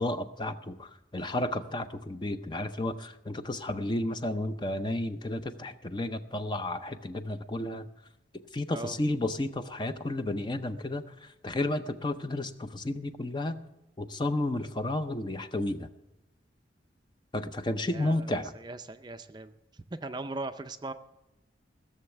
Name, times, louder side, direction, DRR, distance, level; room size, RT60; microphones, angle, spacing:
voice 1, 0.0-7.9 8.5-11.0 11.4-13.6 14.0-15.9 17.3-18.5, left 1 dB, 25° left, 10 dB, 0.6 m, -32 dB
voice 2, 17.8-19.5 19.9-20.9, right 2 dB, 25° right, 9 dB, 0.5 m, -39 dB
16.0 x 7.1 x 7.9 m, 0.95 s
head